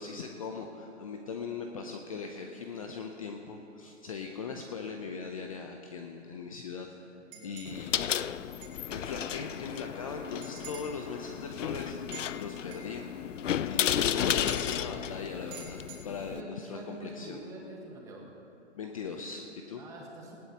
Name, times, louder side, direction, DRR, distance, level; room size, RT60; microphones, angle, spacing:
voice 1, 0.0-7.0 7.4-8.1 8.9-13.3 13.6-15.8 16.0-17.4 18.8-19.8, left 5 dB, 30° left, 4 dB, 0.6 m, -40 dB
voice 2, 7.3-7.6 13.8-14.2 16.2-18.3 19.8-20.4, right 2 dB, 10° right, -2 dB, 1.4 m, -46 dB
sound 1, 7.3-7.8 8.6-8.8 9.2-9.3 10.4-11.0 12.1-12.9 14.3-14.8 15.5-16.0, right 5 dB, 25° right, 2.7 m, -46 dB
sound 2, 7.7-16.4, left 10 dB, 90° left, 0.5 m, -33 dB
18.5 x 16.0 x 2.9 m, 2.8 s
hypercardioid pair, 155°, 36 cm